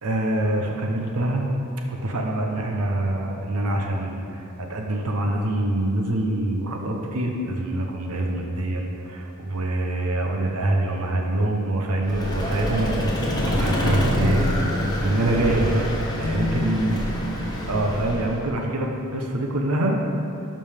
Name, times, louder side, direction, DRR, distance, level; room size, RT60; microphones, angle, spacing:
voice 1, 0.0-1.5 1.9-13.1 13.5-15.8 16.2-17.0 17.6-20.0, right 1 dB, 80° right, 1 dB, 0.9 m, -25 dB
Vehicle, 12.0-18.5, equal, 20° left, 1.1 m, -25 dB
12.0 x 5.3 x 3.5 m, 2.6 s
head